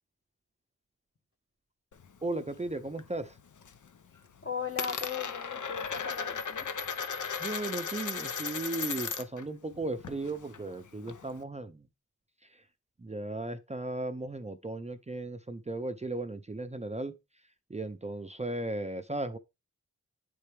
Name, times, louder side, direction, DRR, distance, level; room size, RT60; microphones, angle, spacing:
Coin (dropping), 1.9-3.1 3.4-3.9 4.1-9.4 9.7-11.4, left 6 dB, 75° left, 0.6 m, -36 dB
voice 1, 2.2-3.4 7.4-11.9 13.0-17.1 17.7-19.4, right 2 dB, 20° right, 0.5 m, -36 dB
voice 2, 4.4-6.7, left 6 dB, 45° left, 1.2 m, -38 dB
9.3 x 4.3 x 3.3 m
wide cardioid pair, 70°, 31 cm